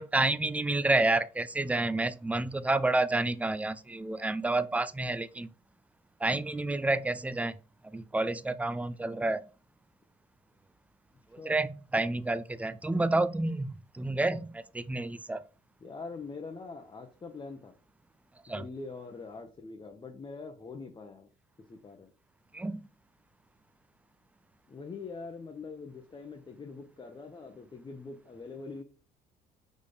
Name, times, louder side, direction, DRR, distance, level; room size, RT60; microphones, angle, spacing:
voice 1, 0.0-5.5 6.2-7.5 7.9-9.4 11.3-15.4 18.5-18.6 22.5-22.9, right 2 dB, 10° right, 0.4 m, -29 dB
voice 2, 15.8-17.8 18.5-21.3 21.7-22.1 24.7-28.8, left 4 dB, 25° left, 0.9 m, -43 dB
5.2 x 4.2 x 5.0 m
cardioid pair, 110°, 17 cm